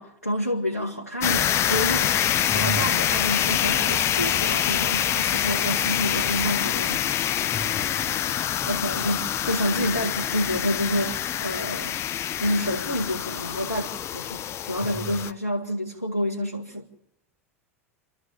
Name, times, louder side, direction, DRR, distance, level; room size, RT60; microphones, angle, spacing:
voice 1, 0.0-2.3 2.5-7.0 8.7-12.0 12.4-16.8, equal, 90° left, 1.5 m, -28 dB
sound 1, 1.2-15.3, left 11 dB, 35° left, 0.9 m, -25 dB
voice 2, 2.5-2.8 7.5-8.1 8.4-8.8 15.0-15.1, right 2 dB, 15° left, 1.9 m, -34 dB
27.5 x 13.0 x 7.5 m
figure-of-eight pair, 80°, 8 cm